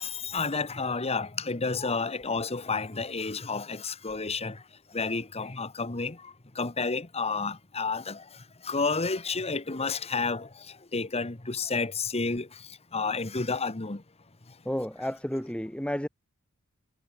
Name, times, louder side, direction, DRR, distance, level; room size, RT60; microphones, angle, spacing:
voice 1, 0.0-4.6 4.9-8.2 8.6-10.7 10.9-12.5 12.9-14.0, left 4 dB, 30° left, 1.3 m, -30 dB
voice 2, 14.6-16.1, equal, 5° left, 2.5 m, -31 dB
head